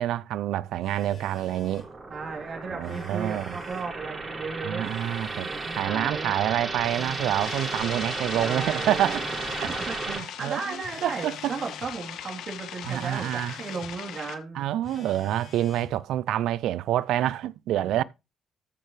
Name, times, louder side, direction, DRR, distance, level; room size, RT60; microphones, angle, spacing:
voice 1, 0.0-1.9 2.7-3.6 4.6-9.3 9.6-9.7 10.1-10.8 11.0-11.5 12.9-13.5 14.5-18.0, right 12 dB, 85° right, 0.4 m, -27 dB
Telephone, 0.8-1.9 2.7-3.9 4.8-5.9 6.8-7.9 8.8-10.0 10.8-11.9 12.8-13.9 14.8-16.0, left 5 dB, 60° left, 3.4 m, -49 dB
sound 1, 1.1-10.2, right 3 dB, 35° right, 5.7 m, -34 dB
voice 2, 2.1-4.9 5.4-6.4 8.4-9.3 9.6-14.7, right 4 dB, 50° right, 3.4 m, -35 dB
sound 2, 7.4-14.4, left 10 dB, 85° left, 1.2 m, -40 dB
14.0 x 6.6 x 3.2 m
cardioid pair, 90°, 0 cm